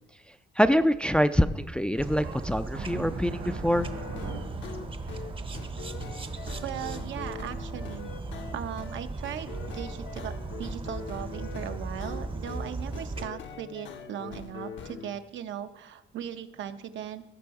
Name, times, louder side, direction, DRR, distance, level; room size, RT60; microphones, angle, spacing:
voice 1, 0.6-3.9, equal, 5° left, 10 dB, 0.4 m, -25 dB
sound 1, 1.7-1.8 2.1-6.5, right 4 dB, 85° right, 3.4 m, -42 dB
sound 2, 2.0-13.3, right 3 dB, 25° right, 0.7 m, -37 dB
sound 3, 3.8-15.1, left 6 dB, 65° left, 1.0 m, -43 dB
voice 2, 6.6-8.1 8.5-17.2, right 9 dB, 70° right, 9 dB, 0.8 m, -38 dB
15.0 x 5.2 x 4.7 m, 1.0 s
cardioid pair, 90°, 20 cm